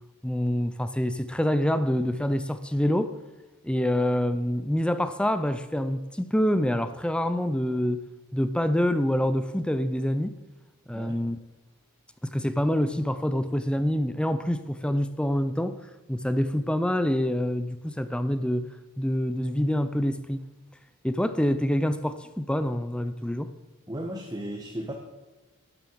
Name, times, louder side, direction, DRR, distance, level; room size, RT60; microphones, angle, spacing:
voice 1, 0.2-3.2 3.6-8.0 8.3-10.4 10.9-11.4 12.2-15.8 16.1-18.7 19.0-20.4 21.0-23.5, equal, 5° left, 0.5 m, -26 dB
voice 2, 23.9-24.9, right 1 dB, 15° right, 1.3 m, -35 dB
12.0 x 10.5 x 7.8 m
head